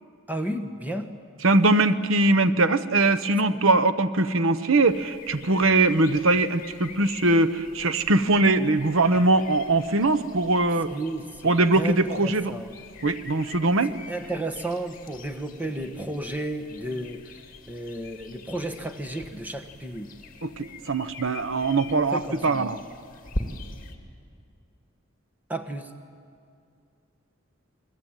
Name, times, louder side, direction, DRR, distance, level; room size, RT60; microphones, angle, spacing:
voice 1, 0.3-1.1 3.5-3.6 10.9-12.7 14.1-17.2 17.7-20.1 21.9-22.7 25.5-25.9, right 1 dB, 10° right, 5 dB, 1.4 m, -33 dB
voice 2, 1.4-10.9 11.4-12.5 13.0-13.9 20.4-22.8, right 2 dB, 75° right, 13 dB, 0.9 m, -21 dB
sound 1, 4.9-24.0, left 2 dB, 40° left, 2.4 m, -43 dB
29.5 x 22.0 x 9.1 m, 2.3 s
head